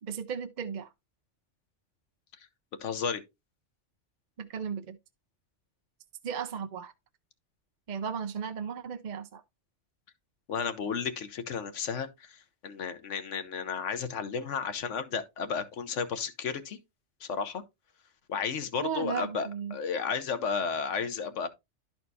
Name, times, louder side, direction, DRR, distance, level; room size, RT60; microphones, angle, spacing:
voice 1, 0.0-0.9 4.4-5.0 6.2-6.9 7.9-9.4 18.8-19.8, right 7 dB, 50° right, 0.6 m, -35 dB
voice 2, 2.8-3.2 10.5-16.8 17.2-17.6 18.3-21.5, left 6 dB, 90° left, 1.2 m, -33 dB
12.0 x 4.3 x 2.7 m
omnidirectional pair, 1.2 m